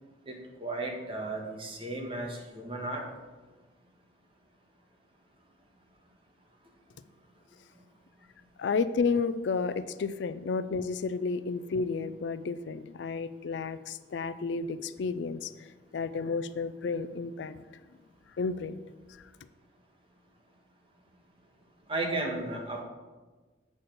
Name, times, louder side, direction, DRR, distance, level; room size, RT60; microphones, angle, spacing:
voice 1, 0.3-3.0 21.9-22.8, right 2 dB, 30° right, 0 dB, 1.4 m, -34 dB
voice 2, 8.6-15.7 15.9-17.6 18.4-18.8, left 4 dB, 80° left, 13 dB, 0.4 m, -31 dB
8.2 x 4.3 x 6.8 m, 1.3 s
head